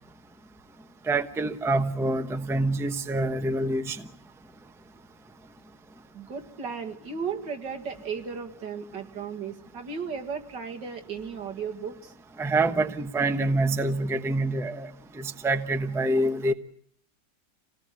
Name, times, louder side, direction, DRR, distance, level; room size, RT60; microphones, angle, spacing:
voice 1, 1.1-4.0 12.4-14.9 15.2-16.5, right 2 dB, ahead, 8 dB, 0.8 m, -26 dB
voice 2, 6.1-12.1, right 6 dB, 90° right, 4 dB, 2.6 m, -35 dB
27.0 x 18.0 x 8.3 m, 0.63 s
omnidirectional pair, 1.8 m